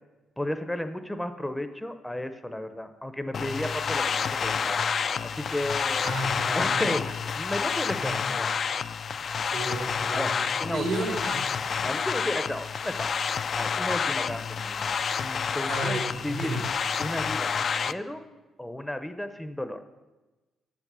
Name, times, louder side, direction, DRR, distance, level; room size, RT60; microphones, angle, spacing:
voice 1, 0.4-4.8 5.3-6.1 6.5-8.5 10.1-10.3 10.6-11.1 11.8-13.1 13.5-14.9 15.2-16.5 17.0-18.2 18.6-19.8, left 1 dB, 5° left, 9 dB, 0.6 m, -33 dB
sound 1, 3.3-17.9, left 6 dB, 50° left, 0.3 m, -29 dB
voice 2, 6.0-6.9 8.0-8.2 9.5-10.4 10.7-12.0 15.7-16.0 16.3-16.6, right 2 dB, 80° right, 4 dB, 1.8 m, -33 dB
7.4 x 7.2 x 6.8 m, 1.2 s
cardioid pair, 90°, 0 cm